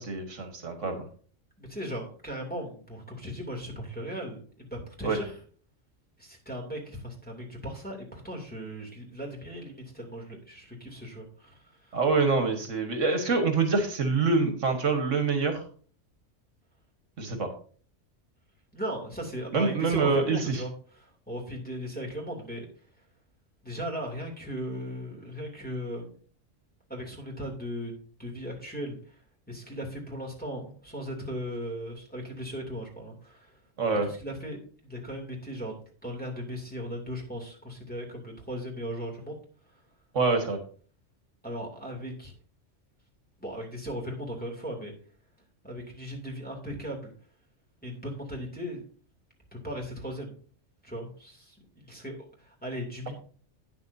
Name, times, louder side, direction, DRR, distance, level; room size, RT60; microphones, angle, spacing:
voice 1, 0.1-1.0 5.0-5.2 11.9-15.6 17.2-17.5 19.5-20.6 33.8-34.1 40.1-40.6, right 4 dB, 75° right, 6 dB, 1.8 m, -25 dB
voice 2, 1.6-5.4 6.2-12.0 18.7-22.7 23.6-26.1 26.9-29.2 29.5-33.6 34.0-34.6 34.8-39.4 41.4-42.3 43.4-44.9 45.6-47.1 47.8-48.8 49.5-50.3 50.8-53.1, equal, 5° left, -2 dB, 2.6 m, -37 dB
11.5 x 9.4 x 2.7 m, 0.43 s
omnidirectional pair, 1.3 m